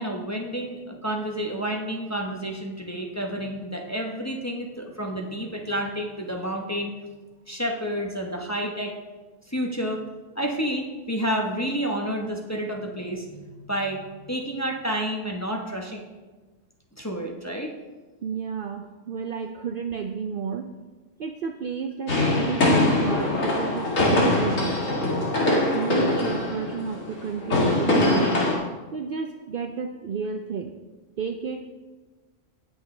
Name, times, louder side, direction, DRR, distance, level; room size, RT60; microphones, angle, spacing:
voice 1, 0.0-6.9 7.5-8.9 9.5-10.0 10.3-16.0 17.0-17.7, equal, 15° left, 0 dB, 0.9 m, -30 dB
voice 2, 18.2-20.7 21.2-24.8 25.4-28.4 28.9-30.7 31.2-31.7, right 6 dB, 60° right, 6 dB, 0.6 m, -31 dB
sound 1, 22.1-28.6, left 2 dB, 85° left, 2.3 m, -23 dB
17.5 x 6.3 x 3.3 m, 1.3 s
omnidirectional pair, 1.3 m